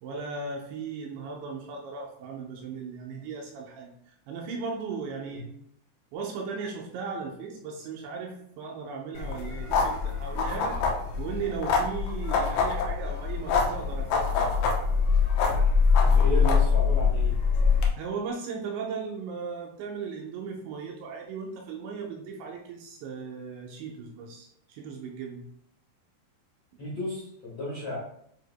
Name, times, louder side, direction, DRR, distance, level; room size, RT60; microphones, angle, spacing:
voice 1, 0.0-5.5 6.1-10.8 11.2-14.5 18.0-25.4, right 5 dB, 80° right, 0 dB, 2.8 m, -37 dB
sound 1, 9.1-17.9, left 5 dB, 75° left, 2.4 m, -24 dB
voice 2, 16.0-17.4 26.8-28.0, left 2 dB, 60° left, -8 dB, 1.7 m, -33 dB
9.1 x 4.7 x 2.2 m, 0.71 s
omnidirectional pair, 5.6 m